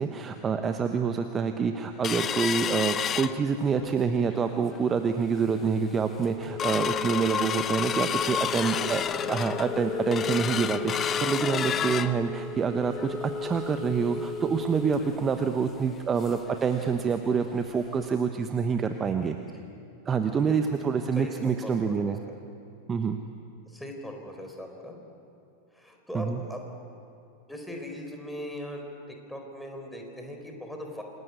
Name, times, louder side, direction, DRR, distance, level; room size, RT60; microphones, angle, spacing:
voice 1, 0.0-9.0 9.3-19.4 20.1-22.2 22.9-23.2 26.1-26.4, right 6 dB, 20° right, 7 dB, 1.2 m, -27 dB
sound 1, 2.0-3.9 4.3-4.4 4.7-5.1 5.6-5.7 6.0-16.5 16.9-17.0 17.3-17.5 18.0-18.1, left 8 dB, 25° left, 0.8 m, -31 dB
voice 2, 8.7-9.0 19.5-19.7 20.4-20.8 21.1-22.3 23.7-25.0 25.7-26.6 27.5-31.0, equal, 5° left, 2 dB, 4.4 m, -40 dB
28.0 x 20.5 x 8.5 m, 2.6 s
figure-of-eight pair, 90°, 0 cm